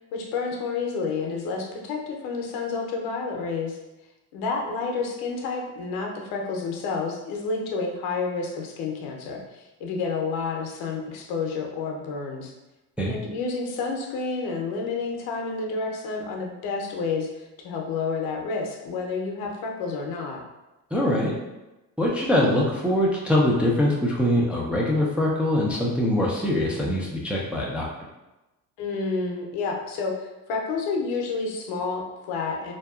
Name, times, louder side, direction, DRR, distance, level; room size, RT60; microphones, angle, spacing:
voice 1, 0.1-3.8 4.3-12.5 13.0-20.4 28.8-32.7, left 4 dB, 75° left, 1 dB, 0.6 m, -30 dB
voice 2, 20.9-21.4 22.0-27.9, left 1 dB, 5° right, -4 dB, 0.3 m, -23 dB
2.7 x 2.3 x 2.3 m, 1.0 s
cardioid pair, 100°, 37 cm